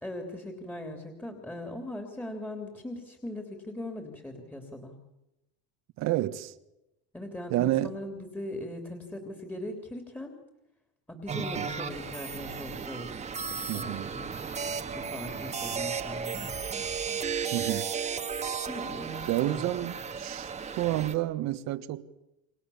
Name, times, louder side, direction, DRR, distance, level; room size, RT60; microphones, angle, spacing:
voice 1, 0.0-4.9 7.1-10.3 11.1-14.3 14.9-16.6 18.7-19.7, left 1 dB, 5° left, 3.3 m, -40 dB
voice 2, 6.0-6.5 7.5-8.0 11.3-11.7 13.7-14.1 17.5-17.9 19.3-20.5 20.8-22.1, right 15 dB, 55° right, 1.6 m, -30 dB
sound 1, 11.3-21.2, right 6 dB, 20° right, 1.7 m, -34 dB
29.0 x 25.0 x 7.2 m
supercardioid pair, 125°, 32 cm